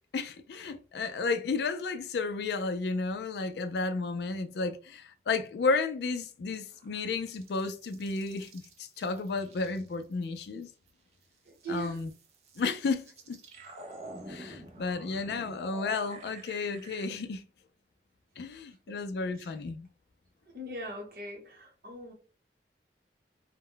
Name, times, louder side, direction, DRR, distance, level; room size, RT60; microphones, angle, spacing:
voice 1, 0.1-10.7 11.7-12.1 12.6-13.4 14.3-17.4 18.4-19.9, left 4 dB, 70° left, 0.3 m, -32 dB
sound 1, 6.7-10.9 11.2-17.1, right 1 dB, 35° right, 0.4 m, -49 dB
voice 2, 11.5-12.0 18.9-19.0 20.5-22.1, right 2 dB, 55° right, 0.9 m, -40 dB
2.1 x 2.1 x 3.7 m
head